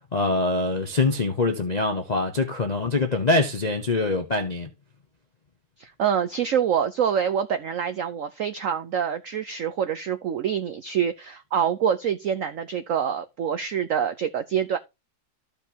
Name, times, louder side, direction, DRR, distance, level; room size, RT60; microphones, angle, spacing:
voice 1, 0.1-4.7, left 3 dB, 55° left, 0.4 m, -24 dB
voice 2, 5.8-14.8, right 8 dB, 80° right, 0.7 m, -26 dB
14.0 x 5.2 x 2.8 m
omnidirectional pair, 2.2 m